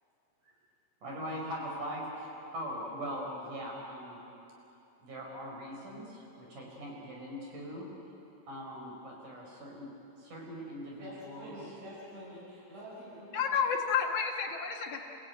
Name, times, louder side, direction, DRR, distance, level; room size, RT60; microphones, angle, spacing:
voice 1, 1.0-4.2 5.0-7.9 8.5-9.9 10.2-11.6, equal, 90° right, -2 dB, 6.4 m, -41 dB
voice 2, 11.0-13.4, equal, 50° right, -6 dB, 8.8 m, -47 dB
voice 3, 13.3-15.0, left 6 dB, 55° left, -1 dB, 3.0 m, -30 dB
29.5 x 16.0 x 9.4 m, 2.9 s
omnidirectional pair, 3.5 m